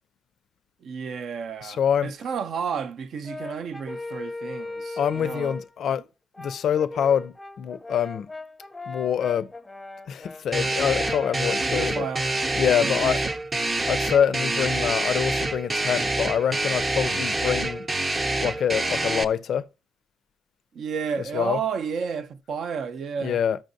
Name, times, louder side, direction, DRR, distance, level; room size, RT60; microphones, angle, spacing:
voice 1, 0.8-5.6 5.8-5.9 11.7-12.3 12.7-13.2 20.7-23.4, right 6 dB, 65° right, 0.5 m, -32 dB
voice 2, 1.6-2.1 5.0-6.0 6.4-8.3 8.9-9.5 10.1-12.1 12.6-13.2 13.8-17.9 18.4-19.6 21.3-21.6 23.2-23.6, left 8 dB, 65° left, 0.4 m, -25 dB
Brass instrument, 3.2-5.8 6.3-13.3, left 3 dB, 15° left, 0.5 m, -38 dB
sound 1, 10.5-19.2, right 2 dB, 25° right, 0.7 m, -26 dB
13.5 x 5.1 x 2.6 m
cardioid pair, 90°, 0 cm